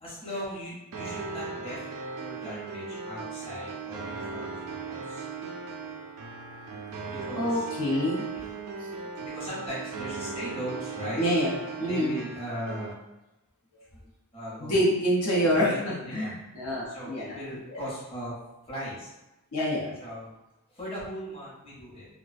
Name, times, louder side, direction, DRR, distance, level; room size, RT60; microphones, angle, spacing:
voice 1, 0.0-1.8 2.2-5.3 7.1-7.7 8.3-8.5 9.2-11.2 11.8-12.9 14.3-14.9 15.4-16.3 16.6-18.3 18.7-19.1 20.0-20.3 20.7-22.1, equal, 25° left, -8 dB, 0.8 m, -38 dB
sound 1, 0.9-12.9, right 4 dB, 90° right, 0.4 m, -38 dB
voice 2, 7.4-8.2 11.2-11.5 11.8-12.1 14.6-17.4 17.7-17.8 19.5-19.9, equal, 70° left, -6 dB, 0.7 m, -26 dB
2.3 x 2.2 x 2.4 m, 0.99 s
head